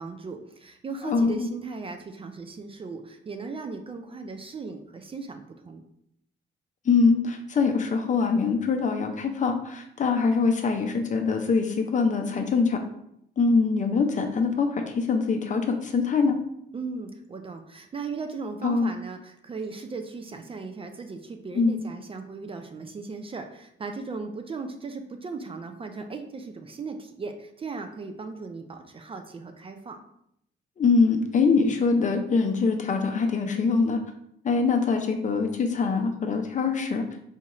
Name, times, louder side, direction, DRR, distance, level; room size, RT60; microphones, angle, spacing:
voice 1, 0.0-5.8 16.7-30.0, right 4 dB, 30° right, 6 dB, 0.4 m, -37 dB
voice 2, 1.0-1.5 6.9-12.8 13.4-16.4 18.6-18.9 21.5-21.8 30.8-34.0 34.4-37.0, left 4 dB, 40° left, 4 dB, 0.5 m, -23 dB
4.3 x 2.3 x 3.0 m, 0.75 s
cardioid pair, 90°, 20 cm